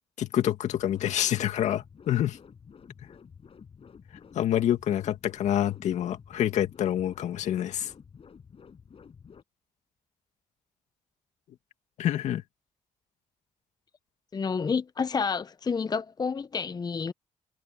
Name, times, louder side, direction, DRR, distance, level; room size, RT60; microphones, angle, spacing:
voice 1, 0.2-2.4 4.3-7.9 12.0-12.4, left 11 dB, 75° left, 2.2 m, -27 dB
sound 1, 0.6-9.4, left 6 dB, 50° left, 8.0 m, -51 dB
voice 2, 14.3-17.1, left 5 dB, 35° left, 0.6 m, -29 dB
cardioid pair, 70°, 12 cm